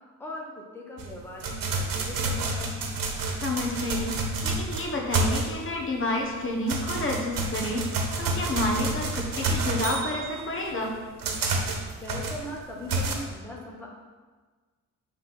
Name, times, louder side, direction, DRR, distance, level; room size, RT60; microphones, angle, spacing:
voice 1, 0.2-2.8 11.9-13.9, left 2 dB, 5° left, -2 dB, 1.1 m, -40 dB
sound 1, 1.0-5.8 6.2-13.1, right 3 dB, 75° right, 1.1 m, -29 dB
voice 2, 3.4-10.9, left 2 dB, 35° left, 0 dB, 1.2 m, -30 dB
7.6 x 3.6 x 5.9 m, 1.4 s
cardioid pair, 120°, 34 cm